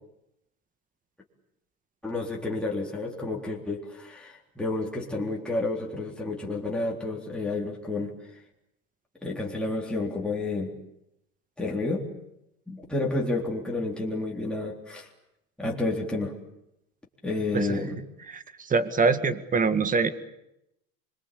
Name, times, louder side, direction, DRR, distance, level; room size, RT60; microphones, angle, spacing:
voice 1, 2.0-8.1 9.2-10.7 11.6-12.0 12.7-15.1 15.6-16.3 17.2-18.0, left 2 dB, ahead, -2 dB, 3.8 m, -30 dB
voice 2, 18.7-20.1, right 4 dB, 20° right, 11 dB, 2.0 m, -23 dB
26.0 x 23.0 x 8.6 m, 0.83 s
supercardioid pair, 125°, 41 cm